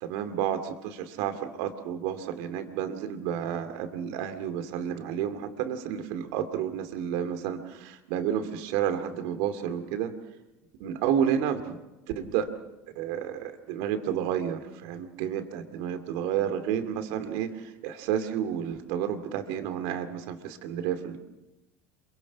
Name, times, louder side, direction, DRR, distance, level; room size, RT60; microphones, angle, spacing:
voice 1, 0.0-10.1 10.8-11.8 12.1-12.5 13.0-17.5 17.8-21.2, right 9 dB, 65° right, 8 dB, 2.3 m, -31 dB
27.0 x 23.5 x 5.9 m, 0.98 s
hypercardioid pair, 80°, 7 cm